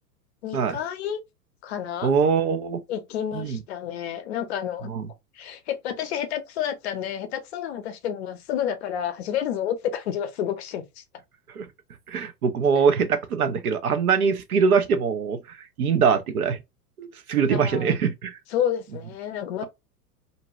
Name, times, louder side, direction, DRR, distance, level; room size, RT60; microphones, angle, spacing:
voice 1, 0.4-1.2 1.6-2.1 2.9-4.9 5.3-11.0 17.5-17.9 18.5-19.6, left 9 dB, 45° left, 0.6 m, -30 dB
voice 2, 2.0-2.8 3.3-3.6 4.9-5.1 11.5-11.7 12.1-16.6 17.0-18.4, right 6 dB, 65° right, 0.7 m, -23 dB
2.7 x 2.2 x 2.9 m
figure-of-eight pair, 95°, 47 cm